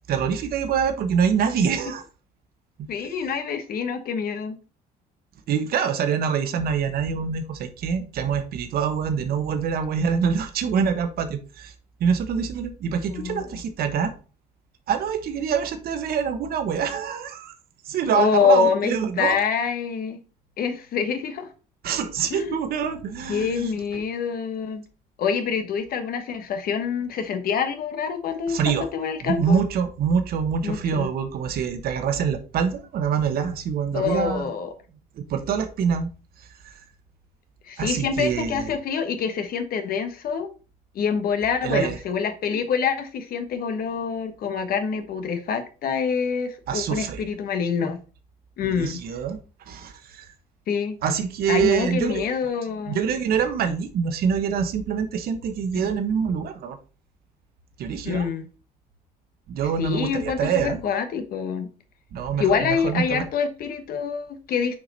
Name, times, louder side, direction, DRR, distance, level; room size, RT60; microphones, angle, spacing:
voice 1, 0.1-2.0 2.8-2.9 5.5-11.7 12.0-14.1 14.9-17.5 17.8-19.4 21.8-24.0 28.5-28.9 29.2-34.5 35.2-36.1 36.6-36.7 37.8-38.7 41.6-42.0 46.7-47.3 48.6-49.4 49.7-50.3 51.0-52.2 52.9-56.8 57.8-58.3 59.5-60.8 62.1-63.2, right 7 dB, 65° right, 1.2 m, -25 dB
voice 2, 2.9-4.6 13.1-13.5 18.1-20.2 20.6-21.5 22.3-22.6 23.3-24.8 25.2-29.6 30.6-31.1 33.9-34.7 37.7-40.5 40.9-48.0 48.6-49.0 50.7-51.0 51.5-53.0 58.0-58.5 59.8-61.7 62.4-64.8, left 6 dB, 60° left, 1.3 m, -26 dB
6.3 x 4.7 x 4.2 m
cardioid pair, 110°, 17 cm